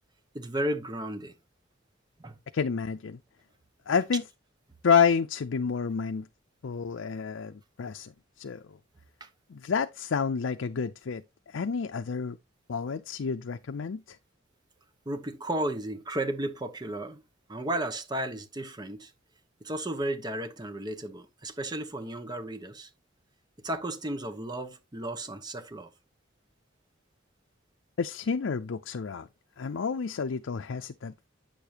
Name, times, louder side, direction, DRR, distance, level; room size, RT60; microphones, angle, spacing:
voice 1, 0.3-1.3 2.2-2.3 9.2-9.3 15.1-17.2 17.5-19.1 19.6-22.9 23.6-25.9, right 1 dB, 20° right, 0.9 m, -34 dB
voice 2, 2.5-3.2 3.9-4.2 4.8-6.3 6.6-8.8 9.5-12.4 12.7-14.2 28.0-29.3 29.6-31.3, left 6 dB, 80° left, 0.5 m, -29 dB
9.0 x 6.7 x 2.9 m
head